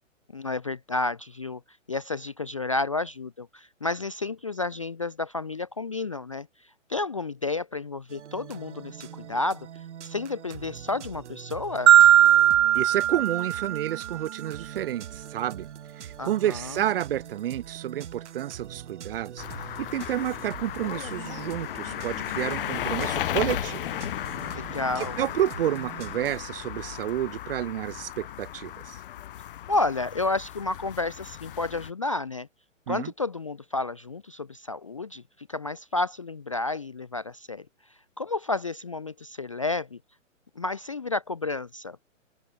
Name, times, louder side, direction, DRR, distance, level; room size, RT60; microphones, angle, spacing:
voice 1, 0.3-1.6 1.9-6.5 6.9-9.7 10.0-11.9 16.2-16.8 24.5-25.2 29.7-32.5 32.9-37.7 38.2-40.0 40.6-42.0, left 3 dB, 25° left, 0.3 m, -31 dB
sound 1, 8.1-26.4, right 9 dB, 60° right, 1.8 m, -43 dB
Marimba xylophone, 11.9-14.1, right 11 dB, 85° right, 0.6 m, -18 dB
voice 2, 12.7-15.7 16.0-23.8 25.0-29.0 32.9-33.1, right 12 dB, 45° right, 1.2 m, -30 dB
sound 2, 19.4-31.9, left 12 dB, 45° left, 1.2 m, -35 dB
open air
hypercardioid pair, 150°, 39 cm